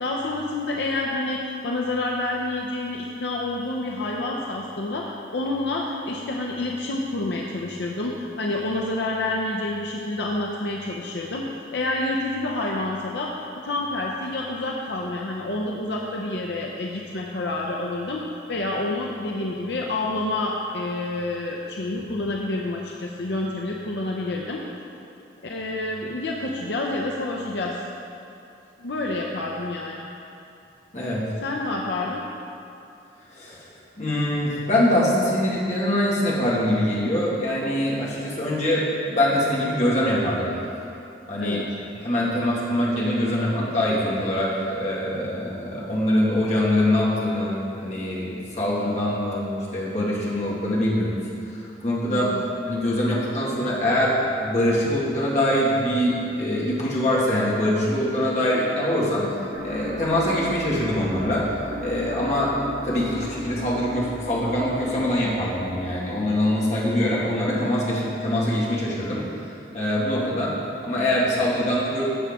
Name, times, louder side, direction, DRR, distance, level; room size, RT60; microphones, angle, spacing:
voice 1, 0.0-13.3 13.6-18.2 18.5-24.6 25.4-27.8 28.8-30.1 31.4-32.2 41.4-41.7 52.1-52.5, left 2 dB, 75° left, -1 dB, 0.7 m, -28 dB
voice 2, 30.9-31.2 33.3-33.7 34.0-40.5 41.3-41.6 42.0-51.1 51.5-52.3 52.7-59.3 59.6-61.5 61.8-62.5 62.8-69.3 69.7-72.0, left 1 dB, 40° left, -6 dB, 1.9 m, -23 dB
sound 1, 59.5-66.6, equal, 45° right, 1.3 m, -36 dB
12.5 x 7.3 x 3.6 m, 2.6 s
head